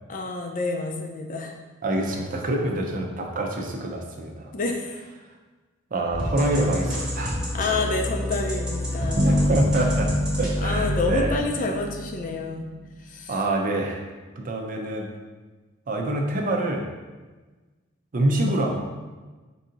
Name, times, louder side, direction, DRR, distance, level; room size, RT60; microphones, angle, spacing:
voice 1, 0.1-1.6 4.5-5.0 7.5-9.5 10.6-12.7 13.0-13.3, left 3 dB, 40° left, 3 dB, 0.4 m, -28 dB
voice 2, 1.8-4.5 5.9-7.4 9.0-10.1 10.4-11.4 13.3-14.0 14.4-15.1 15.9-16.8 18.1-18.8, right 1 dB, 40° right, 1 dB, 0.6 m, -26 dB
sound 1, 6.1-11.4, equal, 5° right, 1.1 m, -29 dB
sound 2, 9.1-12.9, left 1 dB, 60° right, 0.9 m, -26 dB
4.7 x 2.7 x 3.8 m, 1.3 s
head